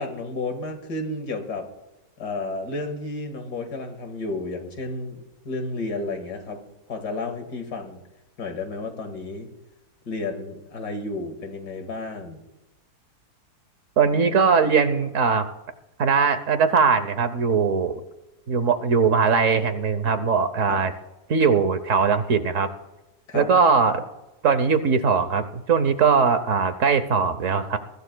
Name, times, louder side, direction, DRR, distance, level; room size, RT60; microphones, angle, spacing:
voice 1, 0.0-1.7 2.2-6.6 6.9-8.0 8.4-9.5 10.1-12.4 20.7-20.8 23.3-23.5, left 3 dB, 75° left, 5 dB, 2.4 m, -32 dB
voice 2, 14.0-15.5 16.0-18.0 18.5-20.9 21.3-22.7 23.3-24.1 24.4-27.8, right 5 dB, 55° right, 11 dB, 1.2 m, -20 dB
23.0 x 15.0 x 2.3 m, 1.0 s
omnidirectional pair, 1.7 m